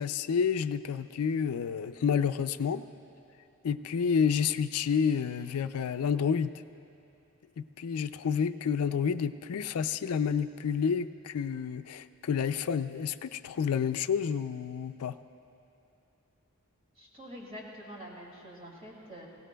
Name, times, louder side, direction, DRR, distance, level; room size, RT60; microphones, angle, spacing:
voice 1, 0.0-2.8 3.6-6.5 7.6-15.1, left 7 dB, 90° left, 12 dB, 0.4 m, -29 dB
voice 2, 17.0-19.3, equal, 25° right, -3 dB, 2.3 m, -46 dB
21.5 x 17.0 x 2.3 m, 2.7 s
head